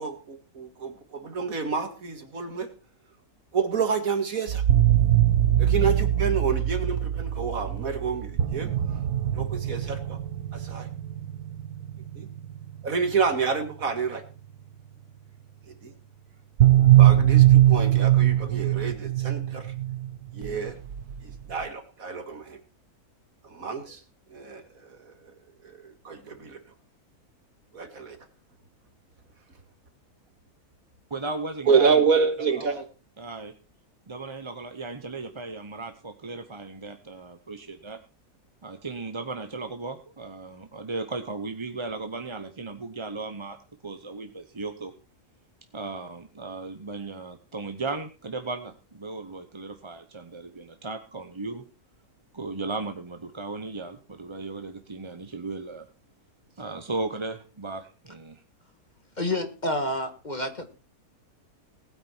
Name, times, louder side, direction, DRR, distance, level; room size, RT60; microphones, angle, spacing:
voice 1, 0.0-2.7 3.5-4.6 5.6-9.0 9.3-10.2 10.5-10.9 12.1-12.3 12.8-14.2 15.7-15.9 17.0-19.7 20.3-20.8 21.2-22.6 23.4-24.0 24.3-25.3 25.6-26.7 27.7-28.2 31.7-32.9, right 5 dB, 65° right, 7 dB, 2.4 m, -28 dB
sound 1, 4.5-14.6 16.6-21.6, right 13 dB, 80° right, 1.6 m, -22 dB
voice 2, 31.1-31.9 33.2-33.5 34.1-38.0 38.6-43.6 43.8-44.9 45.7-51.6 52.3-55.9 56.6-58.4, right 3 dB, 25° right, 7 dB, 0.8 m, -36 dB
voice 3, 59.2-60.7, left 1 dB, 30° left, 7 dB, 1.9 m, -29 dB
19.5 x 9.1 x 4.5 m, 0.35 s
omnidirectional pair, 1.6 m